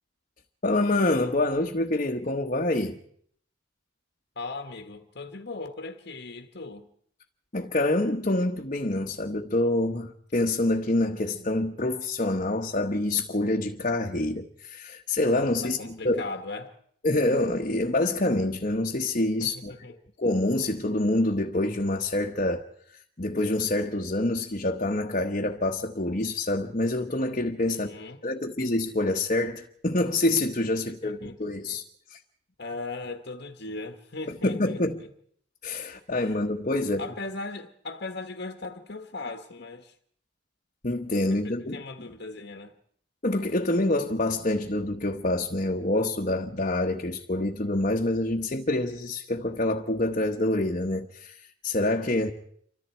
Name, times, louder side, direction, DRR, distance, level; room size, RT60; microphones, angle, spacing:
voice 1, 0.6-3.0 7.5-16.3 17.0-19.8 20.2-27.9 28.2-31.8 32.1-32.2 34.4-35.0 35.6-37.1 40.8-41.8 43.2-52.3, left 2 dB, 40° left, 1.3 m, -26 dB
voice 2, 4.3-6.9 15.6-16.8 19.4-19.5 19.8-19.9 27.7-28.2 30.8-31.8 32.6-34.8 36.2-36.3 37.0-39.9 41.3-42.7, left 3 dB, 60° left, 1.5 m, -38 dB
28.5 x 25.0 x 4.6 m
head